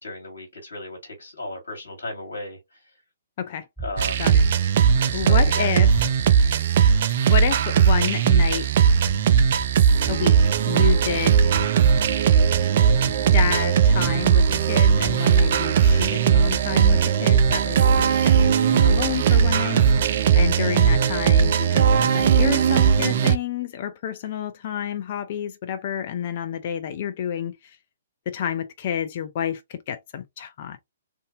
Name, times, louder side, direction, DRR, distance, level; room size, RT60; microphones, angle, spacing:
voice 1, 0.0-3.0 3.8-4.3 5.1-5.7, left 2 dB, 65° left, 1.6 m, -35 dB
sound 1, 3.8-6.6 9.0-21.3, right 3 dB, ahead, 0.8 m, -38 dB
sound 2, 4.0-23.4, right 7 dB, 50° right, 0.4 m, -18 dB
voice 2, 5.1-5.9 7.3-8.7 10.1-10.4 10.6-11.5 13.3-19.9 20.3-21.9 22.1-27.6 28.3-30.8, left 9 dB, 45° left, 0.5 m, -29 dB
3.5 x 2.7 x 2.5 m
figure-of-eight pair, 125°, 0 cm